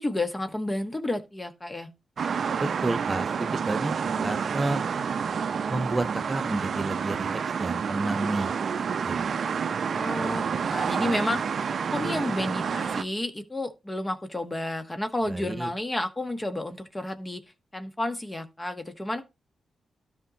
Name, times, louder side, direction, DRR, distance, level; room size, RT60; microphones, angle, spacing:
voice 1, 0.0-1.9 4.1-4.3 9.9-17.4 17.7-19.2, left 1 dB, 25° left, 1.2 m, -31 dB
sound 1, 2.2-13.0, right 6 dB, 65° right, 0.4 m, -29 dB
voice 2, 2.6-4.8 5.7-9.3 15.3-15.7, right 2 dB, 30° right, 1.1 m, -31 dB
12.5 x 5.3 x 2.9 m
supercardioid pair, 45°, 0 cm